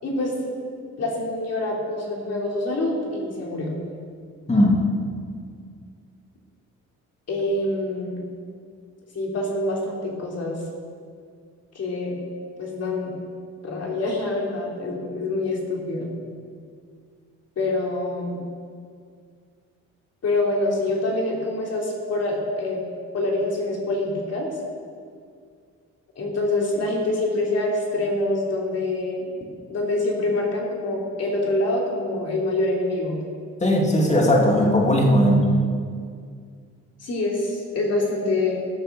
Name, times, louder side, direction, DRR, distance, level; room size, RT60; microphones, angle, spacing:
voice 1, 0.0-0.4 1.0-3.7 7.3-8.2 9.1-10.6 11.7-12.2 12.6-13.1 13.6-16.1 17.5-18.4 20.2-22.8 23.1-24.5 26.1-29.3 29.7-33.2 37.0-38.6, left 2 dB, 55° left, -2 dB, 3.5 m, -25 dB
voice 2, 4.5-4.9 33.6-35.5, left 1 dB, 20° left, 0 dB, 2.6 m, -18 dB
15.5 x 6.8 x 6.9 m, 2.1 s
cardioid pair, 90°, 30 cm